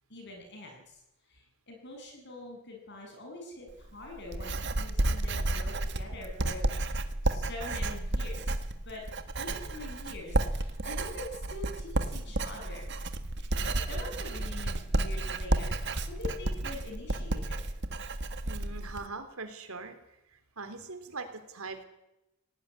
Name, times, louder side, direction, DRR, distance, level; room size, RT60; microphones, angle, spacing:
voice 1, 0.1-1.0 1.3-6.9 7.2-8.6 8.8-9.0 9.4-12.9 13.4-17.6, left 2 dB, 55° left, 2 dB, 7.8 m, -44 dB
Writing, 3.7-19.1, right 2 dB, 55° right, 1.6 m, -32 dB
voice 2, 18.4-20.0 20.3-21.8, right 3 dB, 85° right, 8 dB, 3.5 m, -42 dB
18.5 x 18.5 x 9.9 m, 0.90 s
head